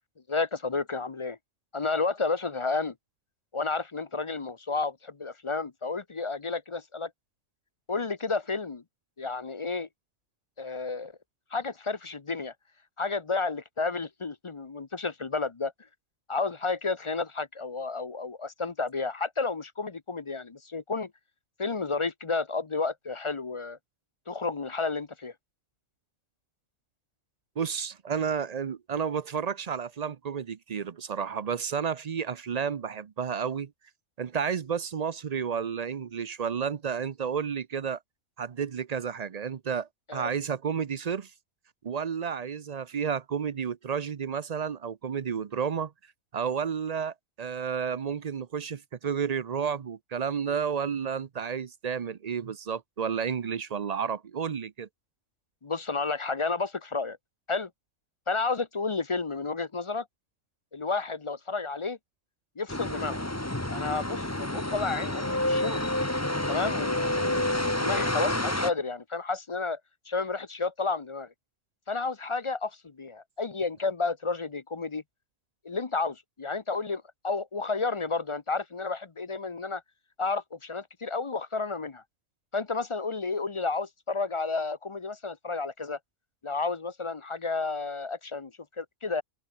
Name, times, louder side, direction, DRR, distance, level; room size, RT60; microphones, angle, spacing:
voice 1, 0.3-1.4 1.7-2.9 3.5-7.1 7.9-8.8 9.2-9.9 10.6-11.1 11.5-12.5 13.0-15.7 16.3-21.1 21.6-23.8 24.3-25.3 40.1-40.3 55.6-57.2 57.5-57.7 58.3-60.1 60.7-62.0 62.6-63.2 63.7-65.8 66.5-69.8 70.1-71.3 71.9-75.0 75.6-79.8 80.2-82.0 82.5-86.0 86.4-89.2, left 4 dB, 30° left, 0.6 m, -31 dB
voice 2, 27.6-33.7 34.2-38.0 38.4-41.3 41.8-45.9 46.3-54.9, right 7 dB, 50° right, 0.5 m, -31 dB
sound 1, 62.7-68.7, left 1 dB, 10° left, 1.9 m, -29 dB
open air
omnidirectional pair, 1.4 m